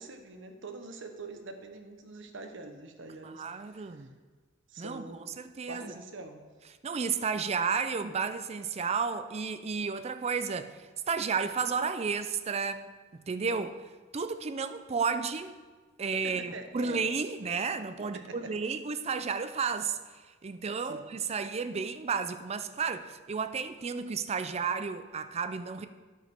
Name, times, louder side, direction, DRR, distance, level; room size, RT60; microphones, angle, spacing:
voice 1, 0.0-4.1 4.7-6.4 16.2-17.0 18.1-18.5 20.8-21.1, right 2 dB, 65° right, 0.9 m, -44 dB
voice 2, 3.2-4.1 4.8-5.0 5.4-5.9 6.8-13.8 14.1-15.5 16.0-25.9, right 5 dB, 30° right, 0.4 m, -32 dB
9.2 x 5.2 x 5.9 m
head